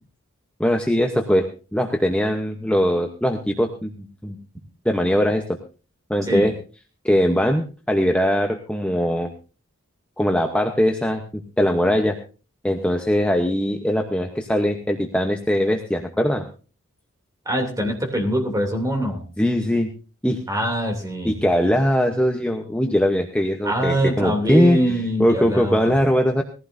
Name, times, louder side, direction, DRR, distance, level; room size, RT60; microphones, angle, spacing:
voice 1, 0.6-4.4 4.8-5.4 6.1-6.5 7.0-9.3 10.2-12.2 12.6-16.4 19.4-19.9 20.2-20.4 21.2-26.4, equal, 5° left, 3 dB, 0.8 m, -21 dB
voice 2, 17.4-19.2 20.5-21.4 23.6-25.9, equal, 15° right, 2 dB, 2.8 m, -23 dB
20.0 x 15.0 x 2.7 m, 0.36 s
head